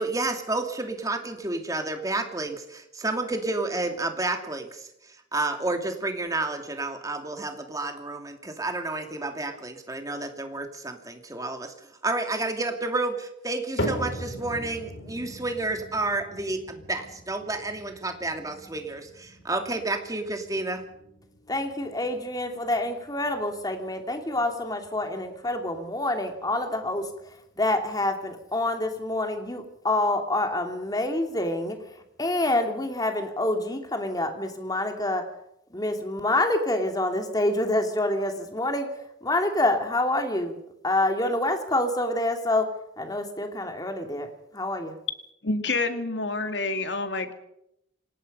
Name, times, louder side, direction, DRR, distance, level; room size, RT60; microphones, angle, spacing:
voice 1, 0.0-4.9 5.3-11.7 12.0-20.8, right 2 dB, 20° right, 5 dB, 2.6 m, -30 dB
sound 1, 13.8-30.1 30.4-30.9 31.5-31.6 32.4-32.5, equal, 90° left, 4.8 m, -40 dB
voice 2, 21.5-27.1 27.6-31.8 32.2-35.3 35.7-38.9 39.2-40.6 40.8-42.7 43.0-44.3 44.5-44.9, left 1 dB, 20° left, 5 dB, 2.7 m, -27 dB
voice 3, 45.4-47.3, left 3 dB, 70° left, 7 dB, 2.3 m, -28 dB
27.0 x 18.5 x 5.5 m, 0.80 s
head